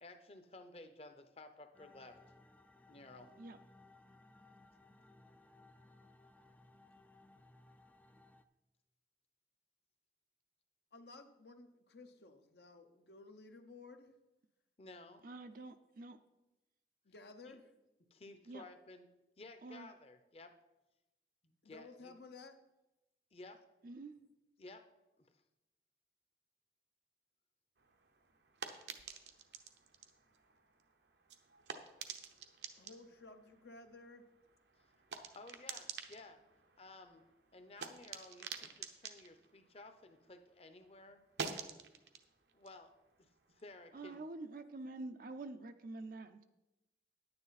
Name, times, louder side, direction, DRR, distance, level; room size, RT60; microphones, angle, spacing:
voice 1, 0.0-2.2 2.9-3.3 14.8-15.3 17.5-17.6 18.1-19.1 19.4-20.6 21.4-22.1 23.3-23.6 24.6-24.9 35.3-36.4 36.8-37.2 37.5-41.2 42.5-43.3 43.5-44.3, left 2 dB, 35° left, 9 dB, 0.7 m, -55 dB
sound 1, 1.7-8.4, left 2 dB, 10° left, 0.4 m, -63 dB
voice 2, 10.9-14.1 17.0-17.7 21.6-22.6 32.8-34.3, left 3 dB, 70° left, 6 dB, 0.8 m, -55 dB
voice 3, 15.2-16.2 18.5-18.7 19.6-19.9 23.8-24.1 43.9-46.4, right 2 dB, 50° right, 7 dB, 0.5 m, -47 dB
sound 2, 27.8-40.5 40.8-44.1, right 6 dB, 80° right, 0.9 m, -50 dB
10.0 x 9.6 x 4.1 m, 1.0 s
head